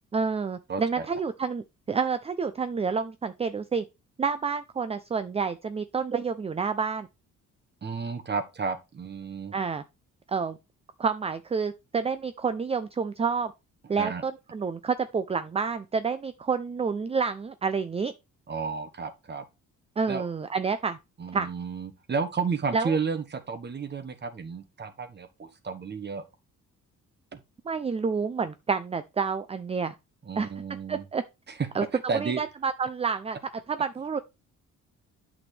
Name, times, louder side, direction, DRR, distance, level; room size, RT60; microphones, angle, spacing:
voice 1, 0.1-3.8 4.2-7.1 9.5-9.8 10.3-10.6 11.0-13.5 13.9-18.1 20.0-21.0 21.3-21.5 22.7-23.0 27.7-29.9 30.4-30.5 30.9-31.2 31.7-31.9 32.2-33.4 33.7-34.2, right 5 dB, 20° right, 0.5 m, -29 dB
voice 2, 0.7-1.1 7.8-9.5 14.0-14.2 18.5-19.4 20.1-20.3 21.2-26.2 27.3-27.4 30.2-31.0 31.5-31.7 32.1-32.4, right 5 dB, 35° right, 1.3 m, -32 dB
8.8 x 6.2 x 3.3 m
cardioid pair, 90°, 30 cm